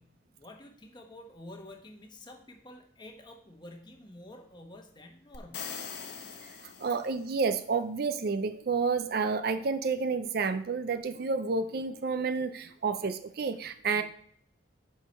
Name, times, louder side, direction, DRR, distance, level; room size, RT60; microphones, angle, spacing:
voice 1, 0.0-5.8 13.9-14.0, left 1 dB, 25° left, 3 dB, 1.0 m, -49 dB
sound 1, 5.3-7.4, left 6 dB, 60° left, 0.9 m, -42 dB
voice 2, 6.8-14.0, right 4 dB, 50° right, 11 dB, 0.4 m, -30 dB
7.6 x 4.5 x 5.2 m, 0.63 s
head